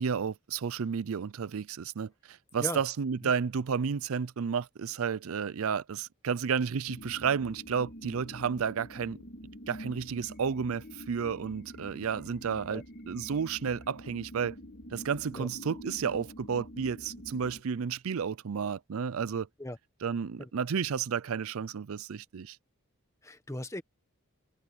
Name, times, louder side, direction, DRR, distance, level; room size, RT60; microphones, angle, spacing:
voice 1, 0.0-9.2 9.7-14.6 14.9-19.5 20.0-22.6, right 6 dB, 75° right, 0.5 m, -32 dB
sound 1, 6.9-17.6, equal, 45° left, 1.8 m, -46 dB
voice 2, 23.2-23.8, left 1 dB, 15° left, 1.1 m, -38 dB
head